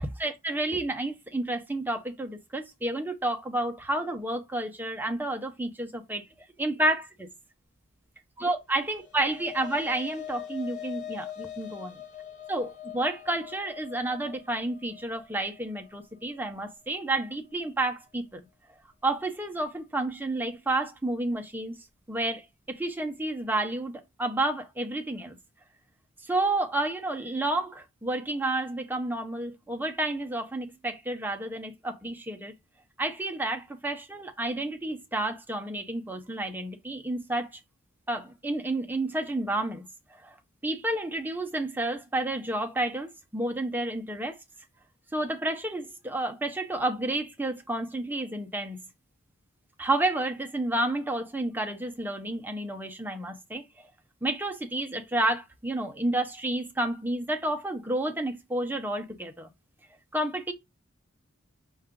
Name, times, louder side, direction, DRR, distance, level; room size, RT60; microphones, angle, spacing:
voice 1, 0.0-6.3 6.6-7.3 8.4-12.0 12.5-18.5 19.0-21.8 22.1-25.4 26.2-32.5 33.0-37.5 38.1-40.4 40.6-44.4 45.1-48.8 49.8-53.6 54.2-59.5 60.1-60.5, right 2 dB, 10° right, 0.6 m, -30 dB
sound 1, 8.8-17.3, left 10 dB, 35° left, 1.3 m, -43 dB
5.6 x 2.4 x 3.6 m
head